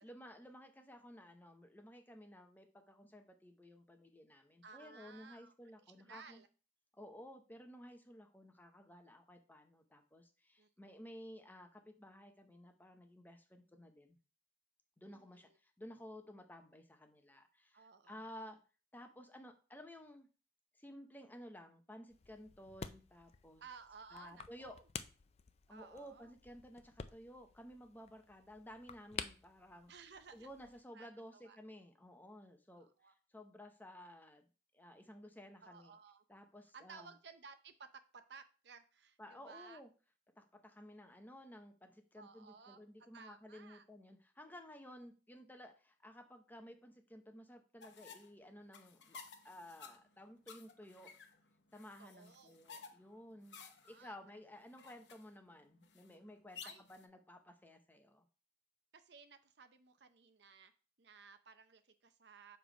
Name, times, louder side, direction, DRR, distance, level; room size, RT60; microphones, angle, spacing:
voice 1, 0.0-6.4 7.0-14.2 15.0-18.6 18.9-20.3 20.8-23.6 24.1-24.7 25.7-29.9 30.3-34.5 34.7-35.9 36.3-37.1 39.2-39.9 40.4-49.2 49.4-51.1 51.7-53.6 53.9-56.6 56.9-58.2, equal, 10° left, 5 dB, 0.7 m, -55 dB
voice 2, 4.6-5.5 5.9-6.5 10.6-11.1 15.1-15.6 17.7-18.5 23.6-24.8 25.7-26.3 29.9-30.5 30.9-31.1 31.3-31.6 32.7-33.1 35.6-36.2 36.7-39.8 42.2-42.8 43.1-43.8 52.0-52.6 53.5-54.2 56.6-56.8 58.9-60.7 61.0-62.6, right 5 dB, 65° right, 9 dB, 0.7 m, -57 dB
sound 1, 22.1-30.8, left 6 dB, 35° left, 0.4 m, -51 dB
sound 2, 47.8-57.1, left 5 dB, 65° left, 0.8 m, -56 dB
7.0 x 3.3 x 5.0 m, 0.36 s
head